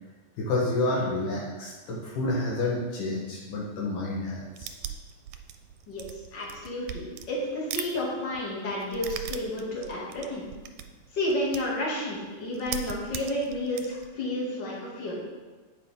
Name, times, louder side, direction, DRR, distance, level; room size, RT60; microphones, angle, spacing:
voice 1, 0.4-4.7, left 2 dB, 70° left, -4 dB, 2.7 m, -29 dB
sound 1, 4.5-11.8 12.2-12.3 12.5-14.1, right 10 dB, 80° right, 2.0 m, -39 dB
voice 2, 6.3-10.4 11.1-15.2, left 1 dB, 35° left, -5 dB, 2.8 m, -31 dB
10.0 x 9.2 x 3.7 m, 1.3 s
omnidirectional pair, 3.9 m